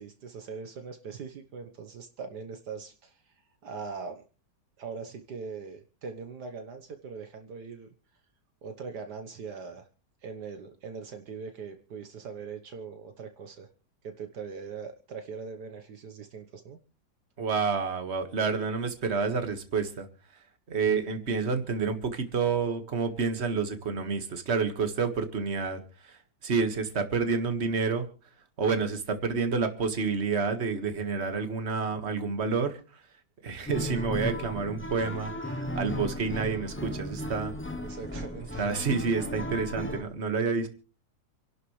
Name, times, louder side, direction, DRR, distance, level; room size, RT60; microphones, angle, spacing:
voice 1, 0.0-3.3 3.6-4.2 4.8-7.9 8.6-9.9 10.2-13.7 14.0-16.8 37.8-38.7 39.5-39.6, right 5 dB, 70° right, 6 dB, 1.7 m, -41 dB
voice 2, 17.4-20.1 20.7-28.1 28.6-32.8 33.4-37.5 38.6-40.7, right 5 dB, 40° right, 7 dB, 1.9 m, -29 dB
sound 1, 33.7-40.0, left 1 dB, 15° left, 0.4 m, -35 dB
28.0 x 11.5 x 3.2 m, 0.37 s
omnidirectional pair, 1.9 m